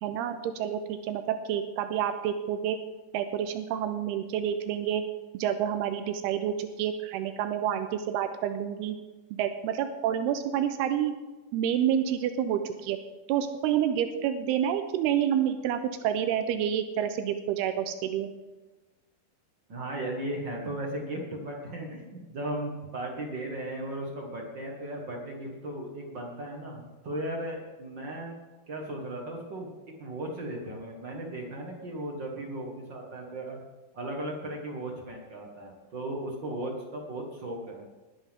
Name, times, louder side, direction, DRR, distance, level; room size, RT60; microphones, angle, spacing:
voice 1, 0.0-2.8 3.1-5.0 5.3-9.0 9.3-11.1 11.5-13.0 13.3-18.3, right 9 dB, 85° right, 8 dB, 2.7 m, -28 dB
voice 2, 19.7-28.3 28.7-29.7 30.0-33.6 33.9-37.8, right 1 dB, 55° right, 0 dB, 1.2 m, -36 dB
20.0 x 10.5 x 3.6 m, 1.2 s
omnidirectional pair, 4.5 m